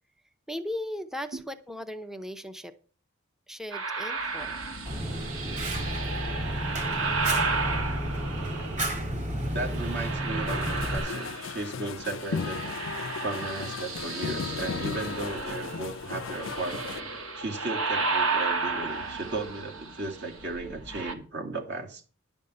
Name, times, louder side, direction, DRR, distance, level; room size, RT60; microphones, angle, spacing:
voice 1, 0.5-2.7 3.5-4.7, left 1 dB, ahead, 10 dB, 0.7 m, -37 dB
sound 1, 3.7-9.0 9.6-11.8 12.1-21.1, right 4 dB, 70° right, 1.8 m, -33 dB
Fire, 4.9-11.0, right 1 dB, 35° right, 2.9 m, -31 dB
voice 2, 9.5-12.7 13.2-16.8 17.3-22.0, right 2 dB, 55° right, 2 dB, 2.2 m, -35 dB
sound 2, 10.5-17.0, left 6 dB, 65° left, 0.4 m, -36 dB
11.0 x 5.3 x 7.8 m, 0.40 s
head